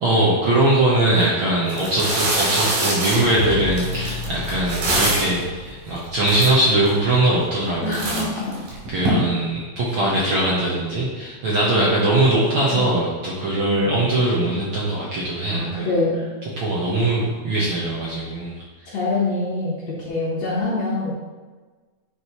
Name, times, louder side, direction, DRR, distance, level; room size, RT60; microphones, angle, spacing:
voice 1, 0.0-8.3 8.9-15.9 16.6-18.6 18.8-19.0, right 1 dB, 60° right, -6 dB, 1.4 m, -21 dB
sound 1, 1.1-1.2 1.7-5.4 6.0-6.1 6.2-6.9 7.4-7.7 7.9-9.1, right 2 dB, 85° right, 3.8 m, -24 dB
sound 2, 3.2-9.4 9.8-10.4, left 2 dB, 80° left, 1.3 m, -34 dB
voice 2, 7.8-8.6 12.6-13.0 13.7-14.0 15.5-16.3 18.9-21.1, left 2 dB, 65° left, -7 dB, 2.2 m, -25 dB
9.4 x 5.0 x 2.9 m, 1.3 s
omnidirectional pair, 3.7 m